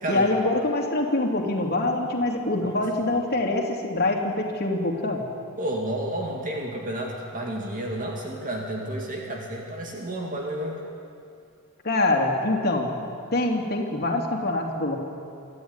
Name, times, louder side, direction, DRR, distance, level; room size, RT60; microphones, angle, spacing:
voice 1, 0.1-5.2 11.8-12.9 13.3-15.0, left 2 dB, 45° left, 1 dB, 3.0 m, -24 dB
voice 2, 5.6-10.8, right 1 dB, 40° right, 0 dB, 2.3 m, -31 dB
25.5 x 13.5 x 9.8 m, 2.4 s
head